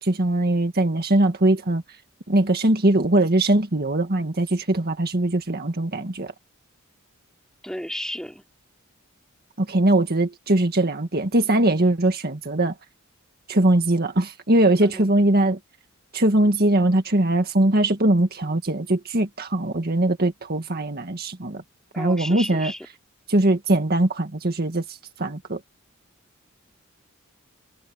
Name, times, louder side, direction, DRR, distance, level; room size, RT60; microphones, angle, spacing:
voice 1, 0.0-1.8 2.3-6.3 9.6-12.7 13.5-15.6 16.1-21.6 22.0-22.7 23.3-25.6, right 1 dB, 45° right, 1.9 m, -21 dB
voice 2, 7.6-8.4 14.8-15.1 21.9-22.9, equal, 5° left, 3.9 m, -33 dB
head